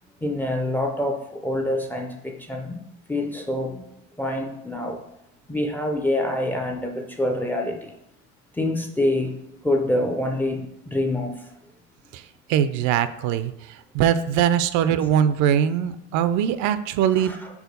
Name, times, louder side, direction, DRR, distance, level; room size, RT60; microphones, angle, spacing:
voice 1, 0.2-2.8 3.1-3.8 4.2-5.0 5.5-7.9 8.6-9.4 9.6-11.4 17.1-17.5, left 1 dB, 5° left, 3 dB, 0.4 m, -26 dB
voice 2, 12.5-13.5 13.9-17.3, right 9 dB, 70° right, 13 dB, 0.5 m, -21 dB
4.7 x 4.2 x 5.2 m, 0.85 s
cardioid pair, 170°, 30 cm